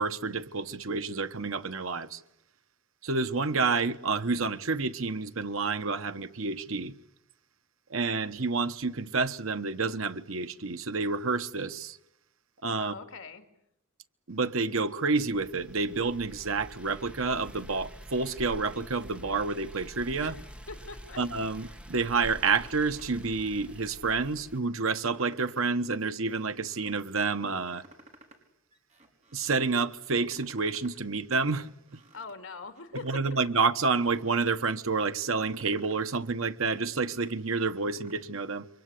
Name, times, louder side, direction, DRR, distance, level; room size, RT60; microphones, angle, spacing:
voice 1, 0.0-2.2 3.0-6.9 7.9-12.0 12.6-12.9 14.3-20.3 21.2-27.8 29.3-31.7 33.0-38.7, right 4 dB, 70° right, 1.2 m, -29 dB
voice 2, 12.8-13.4 20.2-21.2 32.1-33.2, left 4 dB, 65° left, 2.8 m, -42 dB
sound 1, 15.2-24.6, equal, 5° right, 1.1 m, -47 dB
sound 2, 21.1-21.7 22.1-23.2 23.6-24.5 24.9-25.8 26.1-27.0 27.5-28.4 28.7-29.7 30.0-31.0 31.3-32.3 32.7-33.7 33.9-34.8 35.2-36.1 36.5-38.2, right 1 dB, 35° right, 5.3 m, -56 dB
28.0 x 24.5 x 8.4 m
head